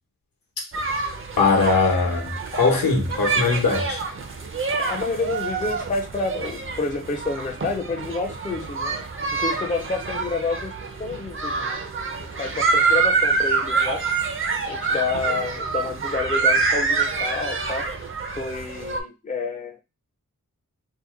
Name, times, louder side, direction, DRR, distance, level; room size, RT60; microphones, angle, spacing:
sound 1, 0.7-19.0, right 4 dB, 40° right, 0.5 m, -26 dB
voice 1, 1.4-4.0, left 4 dB, 75° left, 1.0 m, -21 dB
voice 2, 4.8-9.0 9.3-11.7 12.2-14.0 14.7-17.9 18.4-19.8, left 3 dB, 25° left, 0.4 m, -29 dB
2.7 x 2.1 x 3.6 m
wide cardioid pair, 95°, 34 cm